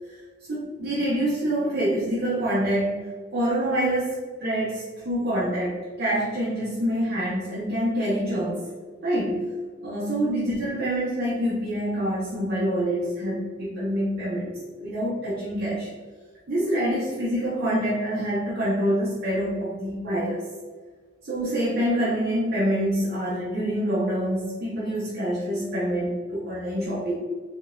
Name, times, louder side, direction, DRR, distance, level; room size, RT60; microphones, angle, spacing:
voice 1, 0.5-8.6 9.0-9.4 9.8-15.9 16.5-20.4 21.2-27.1, equal, 50° right, -8 dB, 0.7 m, -26 dB
3.6 x 2.3 x 2.5 m, 1.4 s
head